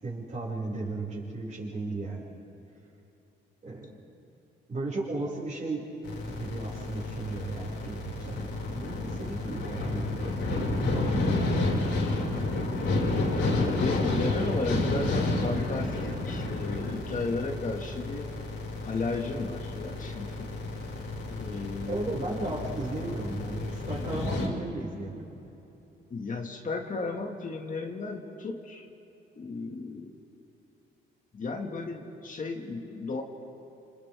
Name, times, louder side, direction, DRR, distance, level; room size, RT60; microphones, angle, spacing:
voice 1, 0.0-2.3 3.6-4.0 4.7-5.9 6.2-11.9 12.2-13.0 14.9-15.0 21.9-25.3, right 2 dB, 35° right, -9 dB, 6.0 m, -36 dB
sound 1, 6.0-24.5, left 2 dB, 75° left, 5.5 m, -30 dB
voice 2, 13.4-18.3 18.8-20.5 21.3-22.0 26.1-28.9 29.4-30.1 31.3-33.2, left 3 dB, 40° left, 1 dB, 2.1 m, -34 dB
29.5 x 28.0 x 3.7 m, 3.0 s
cardioid pair, 90°, 20 cm